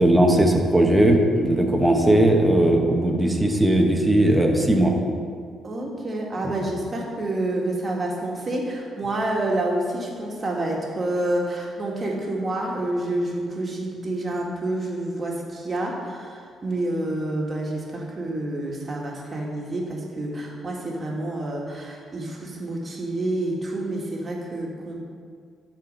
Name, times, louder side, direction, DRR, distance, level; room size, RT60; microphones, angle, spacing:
voice 1, 0.0-4.9, right 1 dB, 10° right, 1 dB, 1.2 m, -18 dB
voice 2, 5.6-25.0, right 1 dB, 35° right, -1 dB, 1.8 m, -28 dB
11.5 x 4.4 x 5.4 m, 2.1 s
cardioid pair, 90°, 0 cm